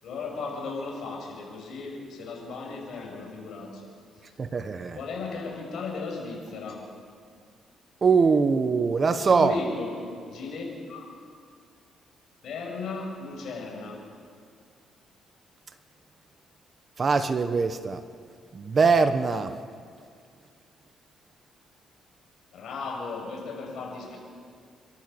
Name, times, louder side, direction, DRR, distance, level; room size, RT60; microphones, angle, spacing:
voice 1, 0.0-3.9 4.9-6.8 9.3-11.0 12.4-14.0 22.5-24.2, left 3 dB, 70° left, 0 dB, 6.5 m, -36 dB
voice 2, 4.4-5.0 8.0-9.6 17.0-18.0 18.5-19.5, right 5 dB, 40° right, 10 dB, 1.2 m, -22 dB
30.0 x 13.0 x 7.0 m, 2.2 s
cardioid pair, 90°, 0 cm